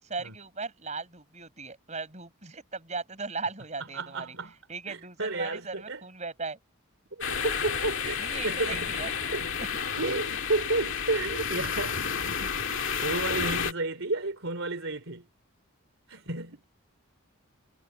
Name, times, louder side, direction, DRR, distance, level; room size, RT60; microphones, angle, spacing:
voice 1, 0.0-6.6 8.2-9.1 9.7-9.8, right 4 dB, 35° right, 5.7 m, -38 dB
voice 2, 3.9-4.5 4.9-6.0 7.1-8.9 9.3-9.5 10.0-15.3 16.1-16.6, right 2 dB, 65° right, 3.4 m, -32 dB
sound 1, 7.2-13.7, left 6 dB, 60° left, 2.2 m, -31 dB
head